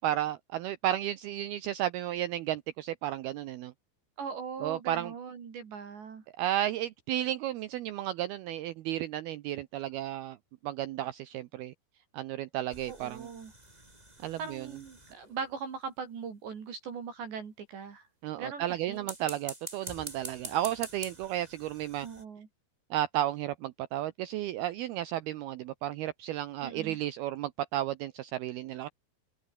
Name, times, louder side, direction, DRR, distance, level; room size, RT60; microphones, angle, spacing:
voice 1, 0.0-3.7 4.6-5.1 6.4-10.4 10.6-11.7 12.1-13.3 14.2-14.7 18.2-22.1 22.9-28.9, right 13 dB, 85° right, 2.2 m, -33 dB
voice 2, 4.2-6.2 12.9-13.5 14.4-18.1 18.4-19.1 22.0-22.5 26.6-27.0, right 6 dB, 65° right, 6.4 m, -40 dB
sound 1, 12.7-15.5 18.9-22.2, right 1 dB, 10° right, 3.6 m, -46 dB
open air
omnidirectional pair, 5.5 m